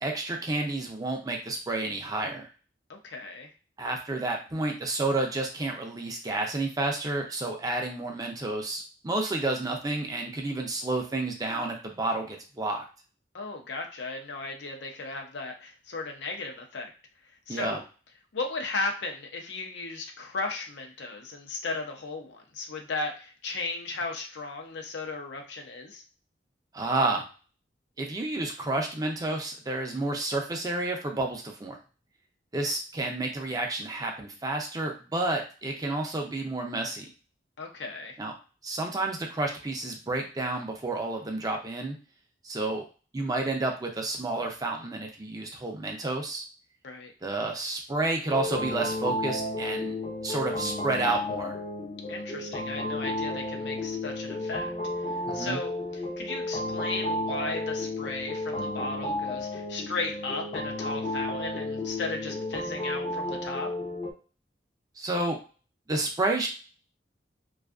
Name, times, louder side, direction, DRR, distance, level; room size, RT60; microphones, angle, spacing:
voice 1, 0.0-2.5 3.8-12.8 17.5-17.8 26.7-27.2 28.0-31.8 32.5-37.1 38.2-38.3 38.6-42.0 42.4-42.8 43.1-46.4 47.2-50.0 50.2-51.6 55.2-55.6 65.0-65.4 65.9-66.5, right 2 dB, 20° right, 2 dB, 0.4 m, -30 dB
voice 2, 2.9-3.5 13.3-16.9 17.5-17.8 18.3-26.0 37.6-38.2 46.8-47.1 52.1-54.7 55.3-55.7 56.2-63.7, left 3 dB, 80° left, 2 dB, 0.6 m, -35 dB
sound 1, 48.3-64.1, left 1 dB, 35° left, 0.5 m, -32 dB
2.5 x 2.3 x 2.3 m, 0.35 s
head